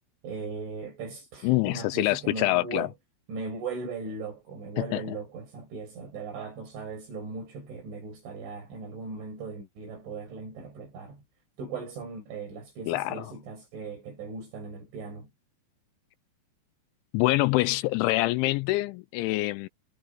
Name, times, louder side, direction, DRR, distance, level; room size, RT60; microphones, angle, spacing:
voice 1, 0.2-2.9 3.3-11.2 11.6-15.3, right 4 dB, 65° right, 8.3 m, -38 dB
voice 2, 1.4-2.9 4.8-5.0 12.9-13.3 17.1-19.7, left 19 dB, 85° left, 2.8 m, -25 dB
omnidirectional pair, 5.8 m